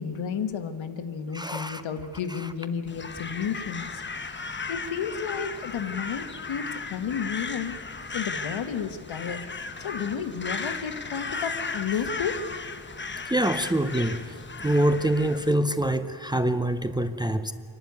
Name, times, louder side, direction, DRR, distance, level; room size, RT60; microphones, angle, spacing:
voice 1, 0.0-4.0 4.7-7.7 8.1-9.5 9.8-12.4, left 7 dB, 75° left, 8 dB, 1.5 m, -32 dB
voice 2, 1.3-1.8 2.3-2.5 13.3-14.2 14.6-17.5, right 1 dB, 10° right, 10 dB, 0.6 m, -25 dB
Crow, 2.9-15.5, left 4 dB, 25° left, 1.0 m, -36 dB
26.5 x 12.0 x 9.5 m, 2.2 s
wide cardioid pair, 125°, 46 cm